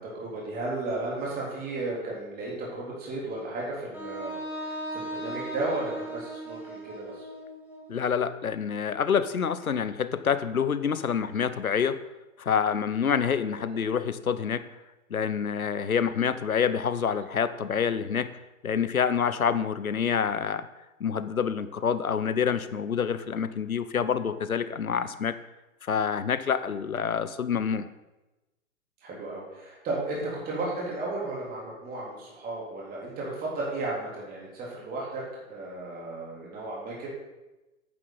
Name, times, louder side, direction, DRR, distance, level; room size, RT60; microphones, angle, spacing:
voice 1, 0.0-7.3 13.6-13.8 29.0-37.1, right 2 dB, 20° right, -4 dB, 3.5 m, -34 dB
Wind instrument woodwind instrument, 3.9-8.0, right 1 dB, 5° right, 2.6 m, -37 dB
voice 2, 7.9-12.0 12.4-14.7 15.1-18.3 18.6-20.7 21.0-25.4 25.8-27.9, left 7 dB, 85° left, 13 dB, 0.8 m, -27 dB
10.0 x 9.3 x 4.0 m, 1.0 s
figure-of-eight pair, 120°, 42 cm